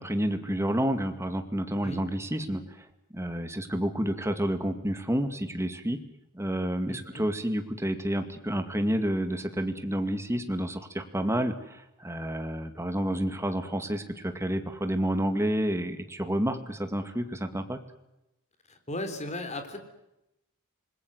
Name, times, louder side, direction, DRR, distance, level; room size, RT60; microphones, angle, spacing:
voice 1, 0.0-2.9 3.1-6.0 6.3-17.8, equal, 10° right, 8 dB, 2.2 m, -29 dB
voice 2, 6.8-7.2 18.7-19.8, left 1 dB, 30° left, 8 dB, 3.8 m, -36 dB
27.5 x 21.0 x 8.0 m, 0.89 s
head